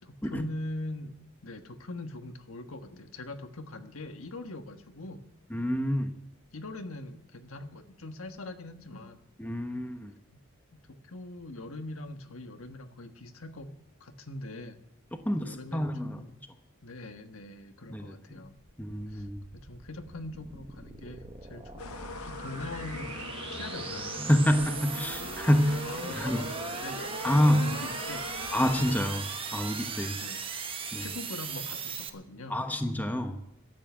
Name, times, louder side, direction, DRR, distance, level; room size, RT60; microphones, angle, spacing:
voice 1, 0.0-1.1 1.4-5.3 6.5-9.2 10.3-10.4 10.9-13.7 14.0-14.8 15.4-16.4 16.8-18.6 19.1-19.3 19.5-24.0 25.6-28.3 30.2-30.4 30.9-32.6, left 2 dB, 75° left, 7 dB, 1.4 m, -42 dB
voice 2, 5.5-6.1 9.4-10.1 15.2-16.2 17.9-18.1 18.8-19.4 24.2-25.8 26.1-26.5 27.2-27.7 28.5-30.2 30.9-31.1 32.5-33.4, equal, 10° left, 6 dB, 1.0 m, -27 dB
sound 1, 18.3-32.1, right 5 dB, 25° right, 1.1 m, -38 dB
sound 2, 21.8-29.1, left 4 dB, 90° left, 0.7 m, -42 dB
12.5 x 8.6 x 9.4 m, 0.78 s
head